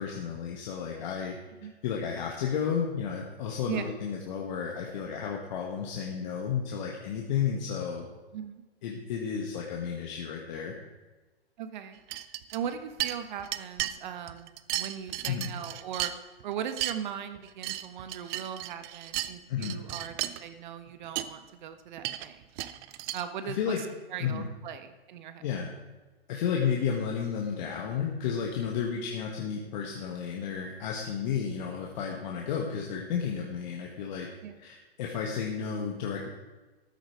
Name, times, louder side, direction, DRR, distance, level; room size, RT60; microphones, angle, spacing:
voice 1, 0.0-1.4 1.8-8.0 8.8-10.8 15.3-15.5 19.5-19.8 23.4-23.8 24.2-24.5 25.4-25.7 26.3-34.3 34.6-36.3, left 7 dB, 45° left, -1 dB, 1.6 m, -32 dB
voice 2, 8.3-8.6 11.6-12.0 12.5-16.1 16.4-22.4 23.1-25.4 28.9-29.1 34.4-34.6, right 8 dB, 50° right, 9 dB, 1.3 m, -39 dB
sound 1, 12.1-12.7 13.0-13.9 14.3-16.4 16.7-16.9 17.4-19.3 19.6-20.4 20.9-21.0 21.2-21.3 22.0-23.2, right 16 dB, 25° right, 0.5 m, -34 dB
13.5 x 9.2 x 4.9 m, 1.2 s
figure-of-eight pair, 115°, 30 cm